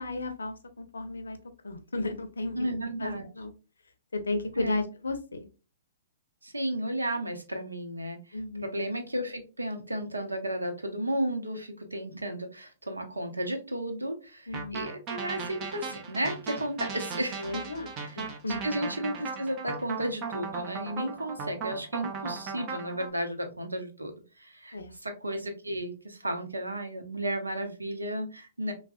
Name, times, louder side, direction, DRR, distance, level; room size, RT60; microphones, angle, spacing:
voice 1, 0.0-1.4 1.6-2.7 3.0-3.5 4.1-5.5 8.3-8.6 14.5-14.9 17.4-17.9 18.2-18.7 24.7-24.9, left 2 dB, 75° left, 7 dB, 0.5 m, -34 dB
voice 2, 2.5-3.2 4.6-4.8 6.4-17.5 18.0-28.7, right 1 dB, 90° right, 5 dB, 0.6 m, -33 dB
sound 1, 14.5-23.1, right 5 dB, 30° right, 0.6 m, -37 dB
3.4 x 2.0 x 2.3 m, 0.33 s
figure-of-eight pair, 115°, 0 cm